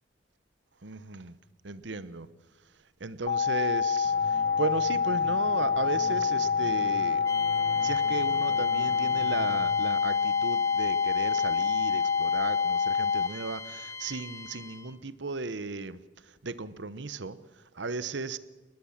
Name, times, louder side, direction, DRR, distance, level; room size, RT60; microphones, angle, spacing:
voice 1, 0.8-1.4 1.6-2.3 3.0-7.2 7.5-18.4, right 3 dB, 70° right, 1.0 m, -36 dB
sound 1, 3.3-13.3, left 6 dB, 45° left, 0.6 m, -26 dB
sound 2, 4.0-9.6, equal, 10° right, 3.3 m, -45 dB
sound 3, 7.2-15.0, left 4 dB, 15° left, 1.2 m, -41 dB
20.5 x 20.0 x 7.4 m
head